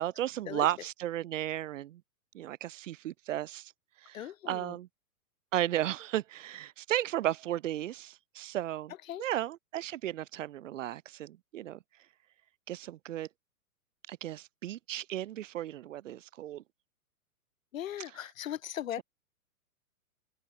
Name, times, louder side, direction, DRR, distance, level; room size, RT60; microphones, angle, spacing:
voice 1, 0.0-2.0 2.3-3.7 4.0-4.2 4.5-4.9 5.5-8.9 9.2-11.8 12.7-13.3 14.1-16.6, right 13 dB, 60° right, 0.6 m, -34 dB
voice 2, 4.1-4.8 9.1-9.3 17.7-19.0, left 11 dB, 60° left, 1.3 m, -38 dB
open air
figure-of-eight pair, 115°, 44 cm